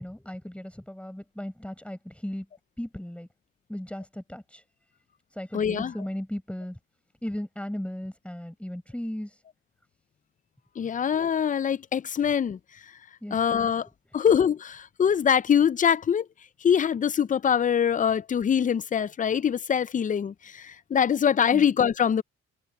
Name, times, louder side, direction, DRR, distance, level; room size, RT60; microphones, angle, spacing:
voice 1, 0.0-2.5 2.8-3.3 3.7-4.6 5.3-6.8 7.2-9.4 10.8-11.0 13.2-13.7 21.5-21.7, left 1 dB, 5° left, 6.8 m, -36 dB
voice 2, 5.5-5.9 10.8-12.6 13.3-13.9 14.1-16.3 16.6-22.2, left 8 dB, 25° left, 0.4 m, -23 dB
open air
cardioid pair, 90°, 30 cm